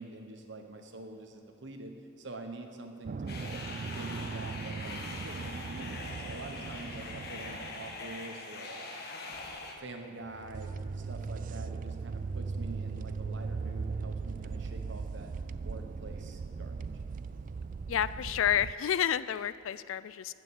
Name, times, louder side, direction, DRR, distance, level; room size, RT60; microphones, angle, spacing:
voice 1, 0.0-3.6 3.9-6.0 6.2-9.0 9.8-15.3 15.6-16.9, right 2 dB, 60° right, 4 dB, 1.2 m, -46 dB
sound 1, 3.1-8.1 10.3-18.7, right 4 dB, 40° right, 0.3 m, -39 dB
sound 2, 3.3-9.7, left 3 dB, 55° left, 1.3 m, -43 dB
voice 2, 17.9-20.3, left 9 dB, 80° left, 16 dB, 0.4 m, -30 dB
14.5 x 6.7 x 7.2 m, 2.8 s
head